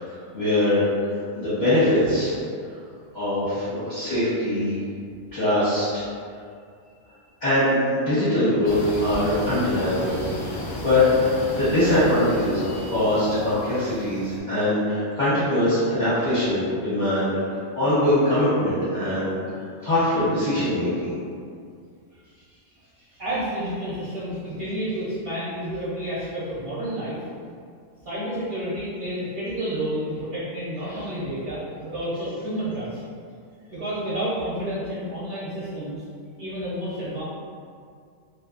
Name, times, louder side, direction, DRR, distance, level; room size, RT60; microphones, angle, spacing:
voice 1, 0.3-2.4 3.1-4.8 5.3-6.0 7.4-10.5 10.8-17.4 17.7-19.3 19.8-21.2, left 1 dB, 40° left, -14 dB, 0.8 m, -22 dB
sound 1, 8.6-14.4, equal, 70° left, 0.4 m, -33 dB
voice 2, 23.2-27.2 28.0-33.0 33.7-36.0 36.4-37.2, right 1 dB, 60° right, -10 dB, 0.6 m, -30 dB
2.5 x 2.3 x 2.3 m, 2.2 s
omnidirectional pair, 1.5 m